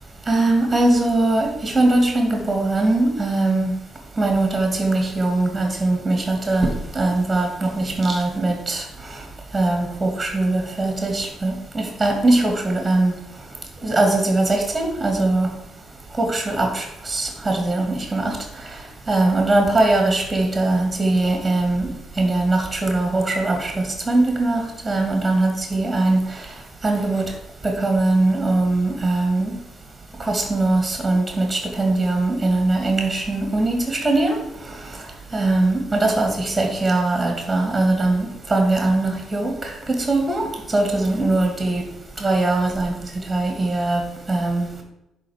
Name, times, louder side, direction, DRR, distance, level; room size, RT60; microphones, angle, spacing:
voice 1, 0.3-3.8 4.2-8.8 9.5-13.1 13.8-15.5 16.2-18.4 18.7-18.8 19.1-21.9 22.2-26.5 26.8-27.3 27.6-29.5 30.2-34.4 35.3-41.8 42.2-42.9 43.3-44.8, right 2 dB, 20° right, 3 dB, 2.4 m, -21 dB
10.5 x 3.9 x 7.3 m, 0.90 s
hypercardioid pair, 45°, 0 cm